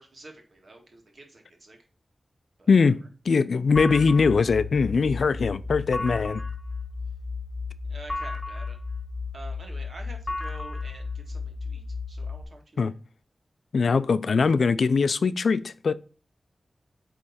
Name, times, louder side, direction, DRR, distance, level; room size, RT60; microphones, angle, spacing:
voice 1, 0.0-1.8 2.6-2.9 7.9-8.8 9.3-12.9, right 2 dB, 65° right, 1.7 m, -47 dB
voice 2, 2.7-6.4 12.8-12.9 13.7-15.9, left 5 dB, 80° left, 0.4 m, -22 dB
sound 1, 3.8-12.4, left 4 dB, 30° left, 1.3 m, -33 dB
8.4 x 3.3 x 4.2 m
cardioid pair, 50°, 0 cm